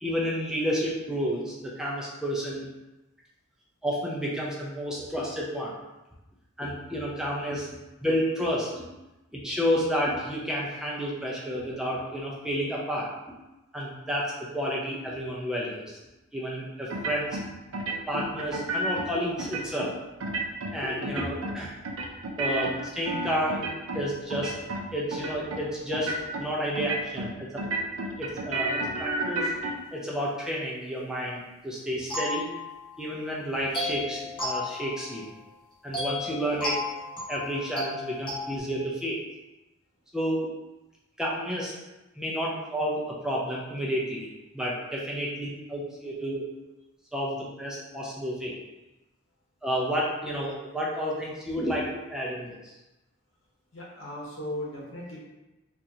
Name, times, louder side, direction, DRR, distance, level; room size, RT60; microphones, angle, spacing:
voice 1, 0.0-2.7 3.8-5.7 6.6-7.7 8.0-8.8 9.3-13.1 13.7-16.0 16.3-17.4 18.1-19.9 20.7-21.7 22.4-23.6 23.9-24.5 24.9-26.1 26.4-27.6 28.2-29.5 29.9-32.5 33.0-35.3 35.8-36.8 37.3-39.1 40.1-40.5 41.2-41.7 42.2-44.3 44.5-46.4 47.1-48.5 49.6-52.7, equal, 5° right, -5 dB, 0.5 m, -30 dB
sound 1, 16.9-17.5 17.7-19.1 19.4-19.9 20.2-20.7 21.0-21.6 21.8-24.0 24.3-24.8 25.1-25.6 25.9-26.4 26.8-27.3 27.6-29.7, right 2 dB, 80° right, 0.5 m, -31 dB
sound 2, 32.1-33.2 33.7-35.5 35.9-38.6, left 2 dB, 25° left, 1.2 m, -34 dB
voice 2, 53.7-55.2, left 1 dB, 70° left, -4 dB, 1.1 m, -37 dB
4.4 x 2.5 x 2.7 m, 1.0 s
head